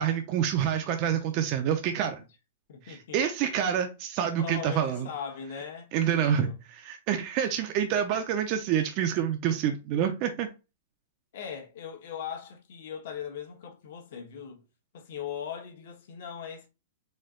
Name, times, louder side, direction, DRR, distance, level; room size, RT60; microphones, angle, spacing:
voice 1, 0.0-2.2 2.9-5.1 5.9-6.5 6.8-10.5, right 9 dB, 30° right, 0.5 m, -27 dB
voice 2, 2.7-3.2 4.4-6.6 11.3-14.6 14.9-16.7, left 8 dB, 55° left, 1.1 m, -39 dB
4.3 x 2.5 x 3.7 m
hypercardioid pair, 170°, 0 cm